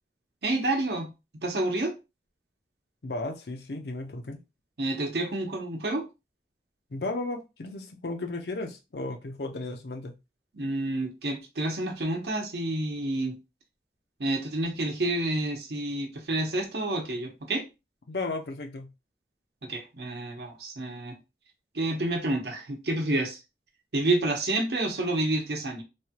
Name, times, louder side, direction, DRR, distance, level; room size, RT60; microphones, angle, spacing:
voice 1, 0.4-1.1 1.4-1.9 4.8-6.0 10.5-13.3 14.2-17.6 19.6-21.2 21.7-23.4 23.9-25.8, right 2 dB, 70° right, 0.9 m, -29 dB
voice 2, 3.0-4.4 6.9-10.2 18.1-18.9, left 2 dB, 70° left, 0.6 m, -34 dB
3.2 x 2.2 x 2.8 m
head